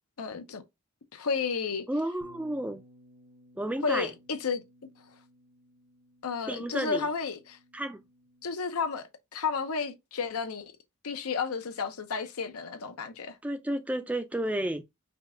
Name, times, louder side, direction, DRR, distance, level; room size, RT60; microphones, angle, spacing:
voice 1, 0.2-0.6 1.1-1.9 3.8-4.6 6.2-7.6 8.4-10.7 11.0-13.4, left 5 dB, 85° left, 0.7 m, -32 dB
voice 2, 1.9-2.8 3.6-4.1 6.5-7.1 7.7-8.0 13.4-14.8, right 1 dB, 5° right, 0.3 m, -31 dB
Bass guitar, 2.2-8.5, equal, 80° right, 1.0 m, -59 dB
5.2 x 2.3 x 3.7 m
head